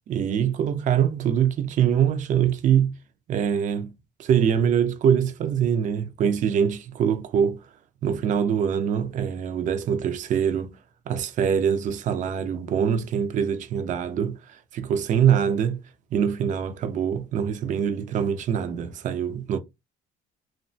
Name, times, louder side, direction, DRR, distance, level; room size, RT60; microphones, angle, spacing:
voice 1, 0.1-2.9 3.3-3.9 4.2-7.6 8.0-10.7 11.1-15.8 16.1-19.6, right 8 dB, 50° right, 0.4 m, -24 dB
2.8 x 2.2 x 2.6 m
cardioid pair, 110°, 17 cm